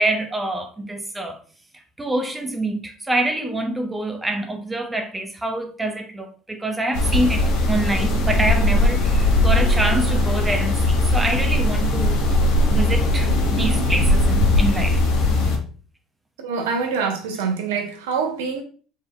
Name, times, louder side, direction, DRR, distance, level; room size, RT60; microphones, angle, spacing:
voice 1, 0.0-1.4 2.0-12.2 12.7-15.0, right 1 dB, 15° right, 0.8 m, -26 dB
sound 1, 6.9-15.6, left 1 dB, 70° left, 0.9 m, -19 dB
voice 2, 16.4-18.6, right 5 dB, 80° right, 0.8 m, -25 dB
4.6 x 3.4 x 2.2 m
hypercardioid pair, 65°, 0 cm